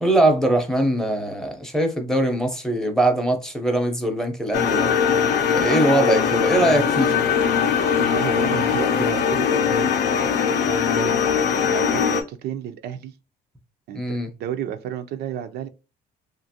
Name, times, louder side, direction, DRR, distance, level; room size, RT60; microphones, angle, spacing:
voice 1, 0.0-4.9 5.5-7.1 13.9-14.3, right 1 dB, 5° left, 0.7 m, -21 dB
sound 1, 4.5-12.2, left 7 dB, 65° left, 0.5 m, -21 dB
voice 2, 8.0-13.1 13.9-15.7, right 10 dB, 70° right, 0.4 m, -33 dB
2.8 x 2.5 x 2.7 m
cardioid pair, 110°, 17 cm